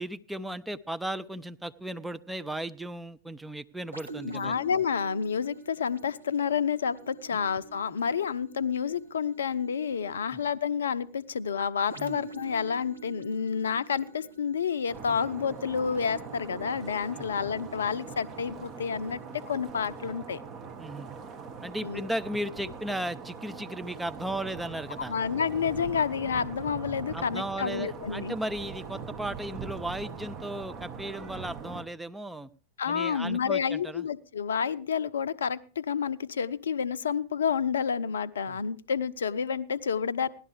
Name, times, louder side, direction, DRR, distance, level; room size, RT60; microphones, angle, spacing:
voice 1, 0.0-4.6 7.3-7.4 12.0-12.2 17.1-17.3 20.8-21.1 21.6-25.1 27.1-32.5 32.9-34.1 38.5-38.6, right 1 dB, 5° right, 10 dB, 0.6 m, -36 dB
sound 1, 3.9-21.4 22.0-22.1, right 3 dB, 85° right, 1.3 m, -48 dB
voice 2, 4.2-19.2 19.5-20.4 21.8-22.1 25.1-28.4 32.8-40.3, left 6 dB, 65° left, 14 dB, 0.5 m, -29 dB
sound 2, 14.9-31.8, right 6 dB, 35° right, 1.3 m, -42 dB
16.5 x 11.5 x 3.3 m, 0.37 s
figure-of-eight pair, 90°, 0 cm